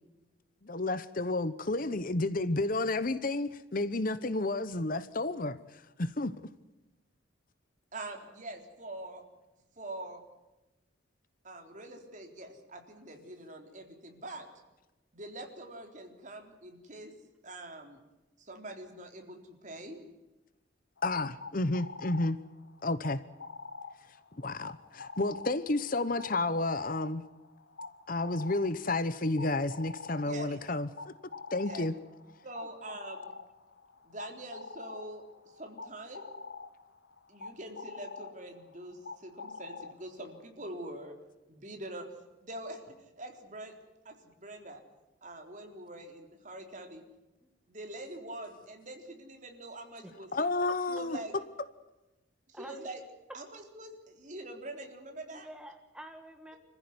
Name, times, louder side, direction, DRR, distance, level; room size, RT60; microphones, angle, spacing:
voice 1, 0.6-6.3 21.0-22.4 22.8-23.2 24.4-27.2 28.1-31.1 31.5-31.9 50.3-51.2, left 2 dB, 45° left, 1.0 m, -31 dB
voice 2, 7.9-9.2 9.8-10.2 11.4-14.5 15.1-17.1 17.4-18.0 18.4-20.0 30.2-30.6 31.6-31.9 32.4-33.4 34.0-35.2 35.5-36.3 37.3-41.1 41.5-42.1 42.4-43.7 44.0-44.8 45.2-47.0 47.7-50.5 50.9-51.3 52.5-53.0 53.3-55.5, right 1 dB, 40° right, 3.8 m, -44 dB
sound 1, 21.0-40.4, left 4 dB, 75° left, 1.3 m, -47 dB
voice 3, 55.3-56.6, right 1 dB, 5° right, 1.9 m, -48 dB
26.0 x 15.0 x 9.6 m
head